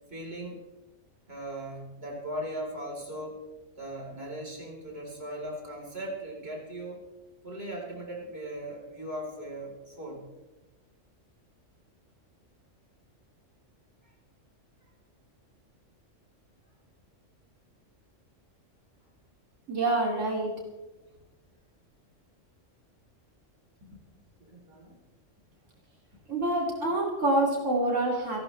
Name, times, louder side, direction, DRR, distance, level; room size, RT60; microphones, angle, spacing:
voice 1, 0.1-0.6 1.3-3.5 3.8-7.0 7.4-10.3 14.0-14.1 24.4-25.0, right 1 dB, 50° right, -2 dB, 4.5 m, -38 dB
voice 2, 19.7-20.5 23.9-24.0 26.3-28.4, right 2 dB, 75° right, -2 dB, 3.4 m, -27 dB
29.0 x 12.5 x 3.4 m, 1.1 s
omnidirectional pair, 1.3 m